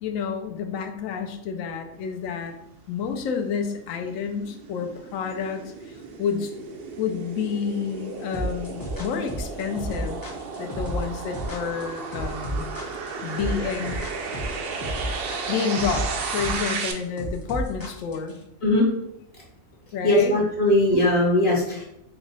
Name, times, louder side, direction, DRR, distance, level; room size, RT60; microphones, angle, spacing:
voice 1, 0.0-2.5 2.9-6.5 7.0-10.2 10.6-12.7 13.2-14.0 15.5-16.1 16.3-18.4 19.9-20.3, left 6 dB, 75° left, 5 dB, 1.0 m, -29 dB
sound 1, 3.7-16.9, right 4 dB, 65° right, 0.6 m, -34 dB
sound 2, 8.3-18.4, equal, 25° left, 0.4 m, -32 dB
voice 2, 20.0-21.8, left 1 dB, 50° left, -3 dB, 1.0 m, -20 dB
4.5 x 2.0 x 3.9 m, 0.80 s
omnidirectional pair, 1.4 m